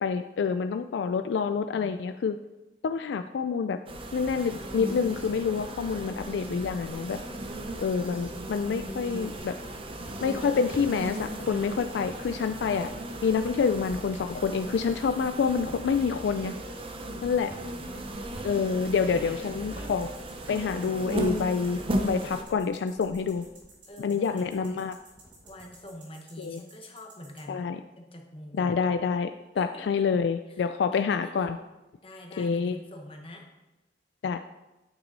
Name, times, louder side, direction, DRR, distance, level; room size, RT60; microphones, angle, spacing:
voice 1, 0.0-2.4 2.8-3.8 4.1-7.2 7.8-9.6 10.2-12.9 13.2-16.5 17.2-17.5 18.4-20.1 20.5-23.4 24.0-25.0 26.4-26.6 27.5-27.8 28.5-29.3 29.6-31.6 32.4-32.8 34.2-34.4, left 5 dB, 75° left, 9 dB, 0.3 m, -27 dB
sound 1, 3.9-22.4, right 1 dB, 30° right, 0.8 m, -36 dB
sound 2, 8.6-11.7 12.1-13.8 14.1-14.9 15.4-25.9, equal, 10° right, 1.2 m, -51 dB
voice 2, 17.6-18.2 21.7-22.3 23.9-24.8 25.4-27.7 28.0-28.8 29.5-30.1 30.5-31.5 32.0-33.5, left 1 dB, 30° left, 2 dB, 1.2 m, -46 dB
sound 3, 19.9-27.4, right 3 dB, 80° right, 3.1 m, -54 dB
9.0 x 6.2 x 4.0 m, 1.0 s
head